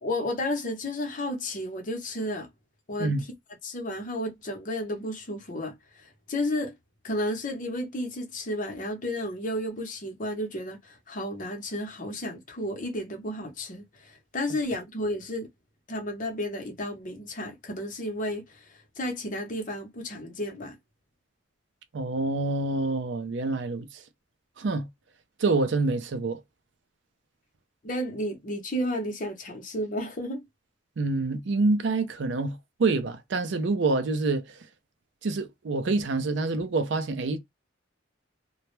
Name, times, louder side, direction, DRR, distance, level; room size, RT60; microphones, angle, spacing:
voice 1, 0.0-2.5 2.9-3.1 3.6-6.7 7.0-15.5 15.9-20.8 27.8-30.4, left 1 dB, 40° left, 0.7 m, -32 dB
voice 2, 21.9-23.9 24.6-24.9 25.4-26.4 31.0-34.6 35.2-37.4, right 3 dB, 65° right, 0.4 m, -27 dB
2.2 x 2.0 x 3.0 m
head